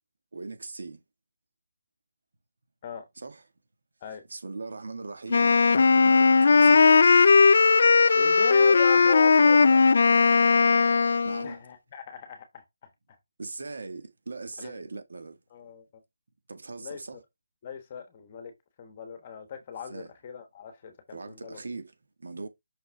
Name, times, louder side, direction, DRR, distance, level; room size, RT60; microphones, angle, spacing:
voice 1, 0.3-1.0 3.2-3.4 4.3-5.6 5.9-7.3 11.2-11.6 13.4-15.4 16.5-17.2 19.9-20.1 21.1-21.9 22.2-22.5, right 3 dB, 65° right, 1.7 m, -40 dB
Wind instrument woodwind instrument, 5.3-11.5, left 4 dB, 50° left, 0.4 m, -18 dB
voice 2, 8.1-9.8 11.4-12.9 14.6-14.8 15.5-15.8 16.8-17.0 17.6-18.5 18.8-21.6, left 8 dB, 20° left, 1.2 m, -39 dB
5.9 x 5.7 x 3.4 m
hypercardioid pair, 175°, 0 cm